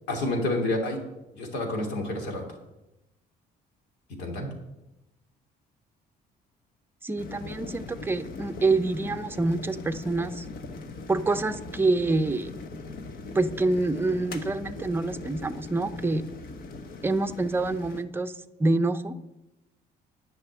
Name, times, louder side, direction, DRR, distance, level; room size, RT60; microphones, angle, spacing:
voice 1, 0.1-1.0 1.4-2.4 4.2-4.5, left 2 dB, 80° left, 1 dB, 2.9 m, -28 dB
voice 2, 7.0-10.4 11.1-12.5 13.3-16.2 17.0-19.1, right 2 dB, 15° right, 9 dB, 0.6 m, -26 dB
sound 1, 7.2-18.0, left 3 dB, 60° left, 1.2 m, -40 dB
10.5 x 6.1 x 8.1 m, 0.96 s
cardioid pair, 110°, 17 cm